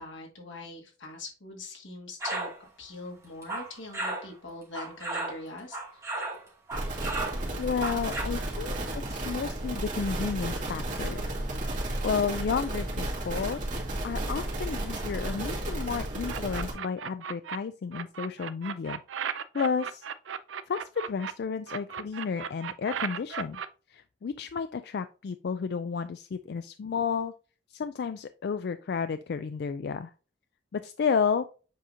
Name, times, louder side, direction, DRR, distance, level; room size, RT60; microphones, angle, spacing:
voice 1, 0.0-6.0, left 2 dB, 85° left, 1 dB, 2.1 m, -43 dB
sound 1, 2.2-2.6 3.2-4.3 4.7-6.4 6.7-8.2, right 2 dB, 15° right, 2.5 m, -34 dB
sound 2, 6.7-16.7, right 1 dB, 45° right, 2.3 m, -33 dB
voice 2, 7.6-8.8 9.1-11.2 12.0-13.6 14.0-19.0 19.5-20.0 20.7-23.6 23.9-27.3 27.7-30.1 30.7-31.5, left 6 dB, 60° left, 11 dB, 0.3 m, -32 dB
sound 3, 16.3-17.6 17.9-21.3 21.7-23.7, right 7 dB, 80° right, 0.5 m, -36 dB
7.5 x 5.0 x 2.8 m, 0.35 s
head